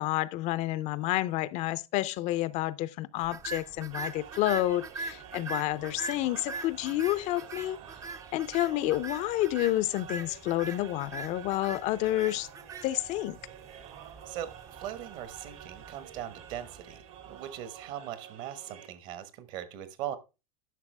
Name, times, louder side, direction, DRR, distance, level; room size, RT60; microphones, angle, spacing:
voice 1, 0.0-7.8 8.3-12.5 12.8-13.4, left 15 dB, 40° left, 0.5 m, -29 dB
sound 1, 3.2-17.6, right 3 dB, 20° right, 0.5 m, -43 dB
sound 2, 3.9-18.9, right 9 dB, 70° right, 2.0 m, -49 dB
voice 2, 14.8-17.0 17.2-20.2, right 11 dB, 55° right, 1.3 m, -39 dB
11.0 x 5.9 x 3.3 m
supercardioid pair, 140°, 18 cm